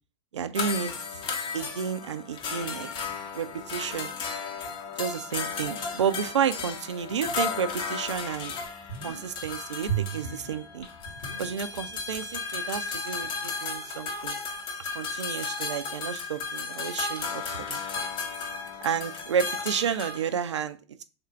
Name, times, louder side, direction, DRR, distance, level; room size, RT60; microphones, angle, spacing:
voice 1, 0.3-0.9 1.5-2.9 3.3-4.1 5.0-8.5 9.0-10.9 11.4-14.4 14.9-17.8 18.8-20.8, right 7 dB, 85° right, 11 dB, 0.4 m, -31 dB
sound 1, 0.5-20.4, left 4 dB, 35° left, 0.8 m, -34 dB
sound 2, 8.1-8.2 8.6-9.4 9.8-12.1 12.3-12.4, right 7 dB, 80° left, 1.2 m, -35 dB
3.6 x 2.5 x 4.2 m, 0.35 s
hypercardioid pair, 95°, 15 cm